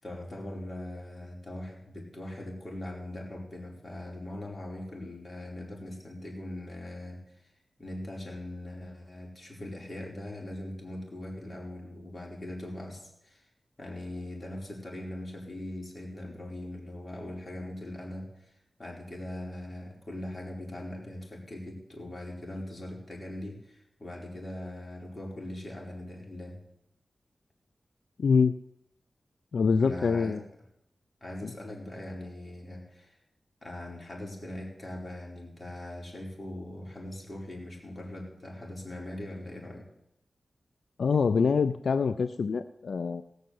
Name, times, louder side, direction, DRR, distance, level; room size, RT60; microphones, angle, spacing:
voice 1, 0.0-7.2 7.8-13.4 13.8-18.5 18.8-26.6 29.8-30.4 31.2-33.2 33.6-39.9, left 1 dB, 30° left, -2 dB, 4.7 m, -41 dB
voice 2, 28.2-28.6 29.5-30.4 41.0-43.2, left 5 dB, 80° left, 11 dB, 0.4 m, -25 dB
18.0 x 6.7 x 7.8 m, 0.81 s
cardioid pair, 55°, 0 cm